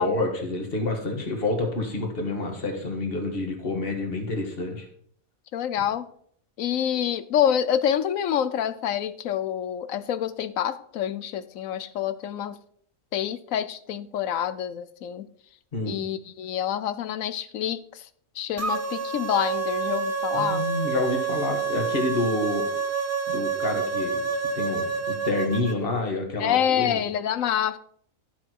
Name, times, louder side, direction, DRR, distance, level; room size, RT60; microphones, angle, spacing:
voice 1, 0.0-4.9 15.7-16.0 20.3-22.6 23.3-24.2 24.5-27.0, left 2 dB, 45° left, 2 dB, 2.1 m, -28 dB
voice 2, 5.5-6.1 6.6-12.6 13.1-15.3 15.8-18.1 18.4-20.6 26.4-27.8, left 9 dB, 75° left, 14 dB, 1.1 m, -27 dB
sound 1, 18.6-25.8, right 5 dB, 15° right, 0.7 m, -28 dB
12.0 x 7.0 x 4.6 m, 0.63 s
omnidirectional pair, 1.4 m